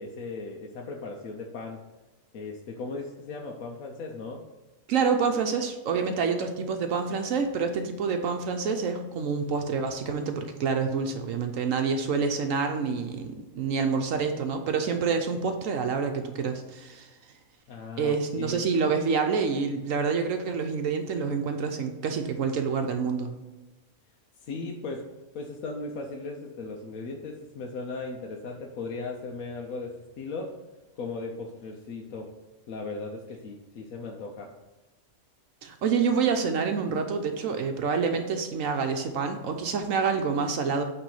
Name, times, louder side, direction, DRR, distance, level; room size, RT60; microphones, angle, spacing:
voice 1, 0.0-1.8 2.3-4.4 17.7-18.6 24.4-25.0 25.3-30.5 31.0-32.3 32.7-34.5, left 3 dB, 70° left, 0 dB, 1.1 m, -37 dB
voice 2, 4.9-17.1 18.0-23.3 35.6-40.8, right 5 dB, 70° right, 5 dB, 1.0 m, -27 dB
8.9 x 3.4 x 5.5 m, 1.1 s
omnidirectional pair, 1.5 m